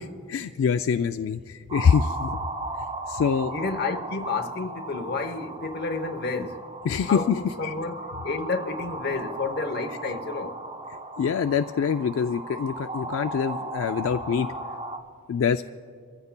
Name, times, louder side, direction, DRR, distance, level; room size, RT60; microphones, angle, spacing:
voice 1, 0.0-2.4 3.1-3.5 6.8-7.7 9.9-10.0 11.2-14.5 15.3-15.6, left 6 dB, 65° left, 0.3 m, -25 dB
sound 1, 1.7-15.0, right 2 dB, 30° right, 1.0 m, -36 dB
voice 2, 3.5-6.6 7.1-10.6, left 3 dB, 45° left, 0.8 m, -30 dB
27.0 x 15.0 x 2.2 m
head